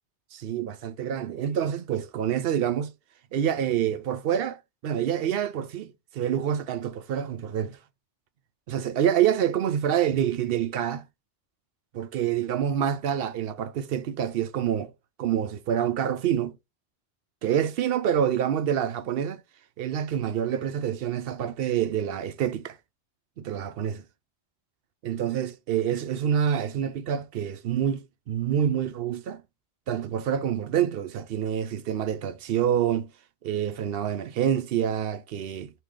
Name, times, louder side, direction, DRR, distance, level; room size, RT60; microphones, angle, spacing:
voice 1, 0.3-2.9 3.3-7.8 8.7-11.0 11.9-14.9 15.2-16.6 17.4-19.4 19.8-22.8 23.4-24.0 25.0-29.4 29.9-33.1 33.4-35.7, right 9 dB, 65° right, 0.7 m, -27 dB
3.7 x 3.0 x 4.6 m
omnidirectional pair, 1.2 m